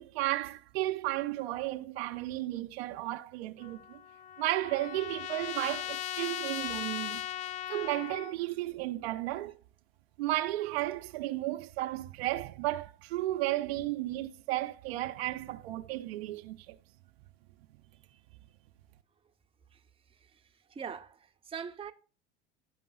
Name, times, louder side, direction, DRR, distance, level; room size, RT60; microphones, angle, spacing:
voice 1, 0.0-4.0 4.4-7.2 7.7-9.6 10.2-16.8, right 16 dB, 70° right, 0.6 m, -33 dB
Trumpet, 3.6-8.3, left 13 dB, 65° left, 0.5 m, -38 dB
voice 2, 20.7-21.9, right 7 dB, 15° right, 0.7 m, -42 dB
12.5 x 5.3 x 2.3 m
hypercardioid pair, 80°, 32 cm